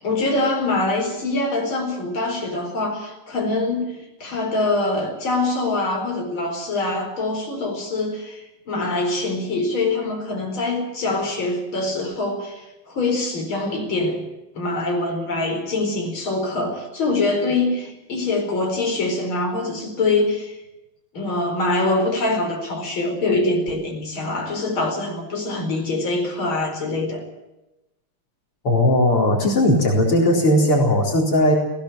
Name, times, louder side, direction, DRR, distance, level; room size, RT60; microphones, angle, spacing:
voice 1, 0.0-14.2 14.5-20.6 21.1-27.2, left 2 dB, 65° left, 2 dB, 5.3 m, -24 dB
voice 2, 28.6-31.5, left 1 dB, 85° left, 0 dB, 5.1 m, -17 dB
20.5 x 17.5 x 7.5 m, 0.95 s
omnidirectional pair, 2.4 m